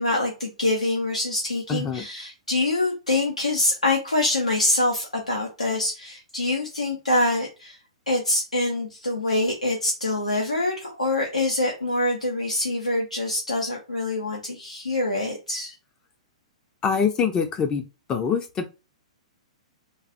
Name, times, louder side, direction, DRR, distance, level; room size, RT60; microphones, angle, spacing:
voice 1, 0.0-7.8 8.1-15.7, left 2 dB, 85° left, 0 dB, 0.7 m, -25 dB
voice 2, 1.7-2.0 16.8-17.8 18.1-18.7, left 6 dB, 20° left, 5 dB, 0.4 m, -24 dB
3.1 x 2.3 x 2.6 m, 0.30 s
figure-of-eight pair, 110°, 4 cm